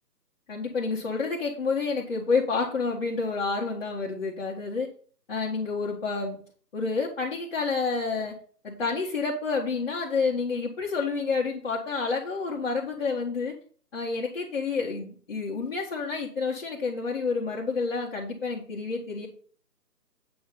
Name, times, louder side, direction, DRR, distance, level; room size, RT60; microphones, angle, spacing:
voice 1, 0.5-4.9 5.3-6.4 6.7-8.4 8.6-13.5 13.9-19.3, left 4 dB, 35° left, -5 dB, 1.7 m, -29 dB
8.6 x 6.1 x 4.0 m, 0.43 s
figure-of-eight pair, 150°, 50 cm